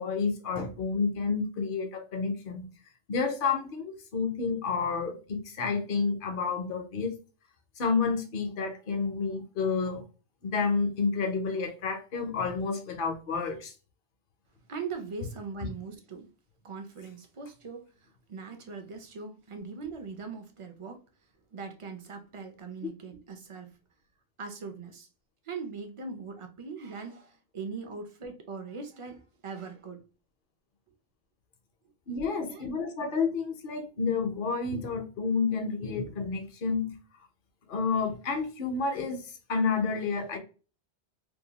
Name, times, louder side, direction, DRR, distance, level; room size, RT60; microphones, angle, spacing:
voice 1, 0.0-2.7 3.1-7.2 7.8-10.0 10.4-13.7 32.1-36.9 37.7-40.4, left 4 dB, 60° left, 0.8 m, -30 dB
voice 2, 14.7-16.3 16.6-21.0 21.5-23.8 24.4-25.1 25.4-30.0 32.4-32.7, right 5 dB, 50° right, 0.4 m, -41 dB
2.7 x 2.2 x 2.8 m
omnidirectional pair, 1.1 m